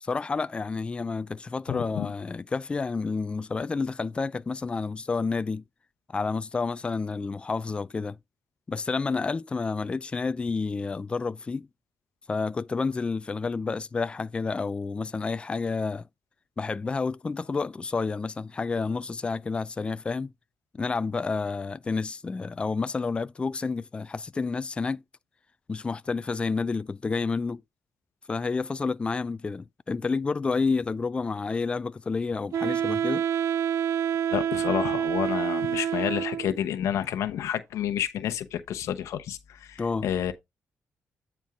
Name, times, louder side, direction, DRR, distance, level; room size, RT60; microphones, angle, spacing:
voice 1, 0.0-5.6 6.1-8.2 8.7-11.7 12.3-16.0 16.6-20.3 20.7-25.0 25.7-27.6 28.3-33.3 39.8-40.1, left 4 dB, 20° left, 0.3 m, -30 dB
voice 2, 1.7-2.1 34.3-40.3, left 10 dB, 90° left, 0.9 m, -30 dB
Wind instrument woodwind instrument, 32.5-36.6, right 9 dB, 70° right, 0.4 m, -27 dB
9.1 x 4.4 x 3.6 m
cardioid pair, 130°, 5 cm